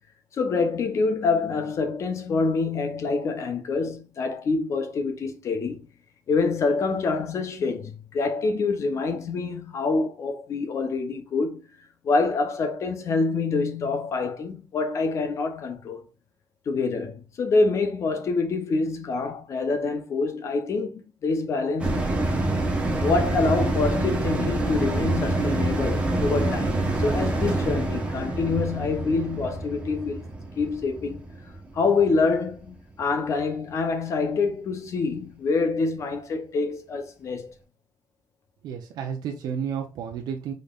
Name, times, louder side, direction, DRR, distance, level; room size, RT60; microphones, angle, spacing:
voice 1, 0.3-5.9 6.3-11.6 12.0-16.0 16.7-22.4 23.0-30.2 30.6-31.2 31.7-37.5, left 4 dB, 45° left, 0.8 m, -26 dB
sound 1, 21.8-32.5 32.9-33.0, right 2 dB, 15° right, 1.0 m, -26 dB
voice 2, 38.6-40.5, right 7 dB, 80° right, 0.7 m, -31 dB
5.3 x 3.9 x 2.4 m
cardioid pair, 155°, 7 cm